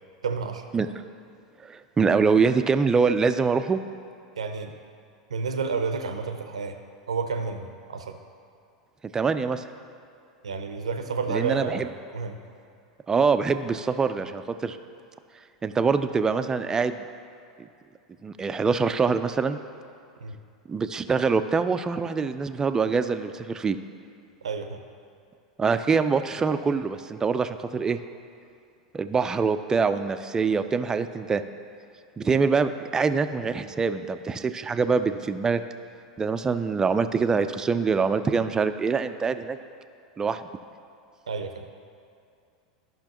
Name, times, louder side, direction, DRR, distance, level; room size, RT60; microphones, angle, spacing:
voice 1, 0.2-0.6 4.4-4.7 5.3-6.8 7.1-8.2 10.4-12.4 20.2-20.4 24.4-24.8 41.3-41.7, right 5 dB, 80° right, 7 dB, 0.6 m, -30 dB
voice 2, 1.6-3.8 9.1-9.6 11.3-11.9 13.1-14.8 15.6-17.0 18.2-19.6 20.7-23.8 25.6-28.0 28.9-31.4 32.2-35.6 36.2-39.6 40.2-40.4, right 5 dB, 20° right, 10 dB, 0.4 m, -24 dB
13.5 x 5.8 x 2.9 m, 2.5 s
hypercardioid pair, 90°, 3 cm